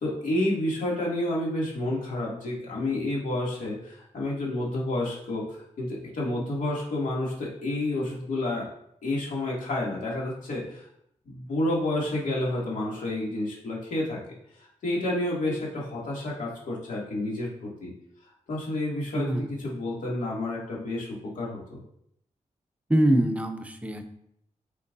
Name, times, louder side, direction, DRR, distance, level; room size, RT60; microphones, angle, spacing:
voice 1, 0.0-5.4 5.8-8.7 9.0-10.9 11.3-14.2 14.6-17.9 18.5-21.1 21.3-21.8, left 1 dB, 85° left, -5 dB, 2.6 m, -30 dB
voice 2, 19.2-19.5 22.9-24.0, right 1 dB, 10° right, 7 dB, 0.7 m, -24 dB
9.2 x 5.3 x 2.7 m, 0.74 s
wide cardioid pair, 140°, 13 cm